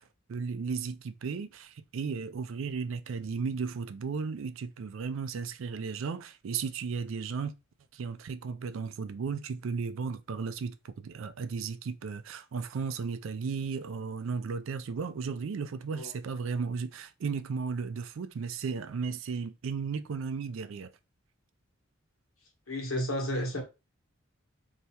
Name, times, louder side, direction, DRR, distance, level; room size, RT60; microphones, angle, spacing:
voice 1, 0.3-7.5 7.9-20.9, right 5 dB, 70° right, 0.4 m, -35 dB
voice 2, 22.7-23.6, equal, 80° left, 1.3 m, -32 dB
3.3 x 2.8 x 2.8 m
head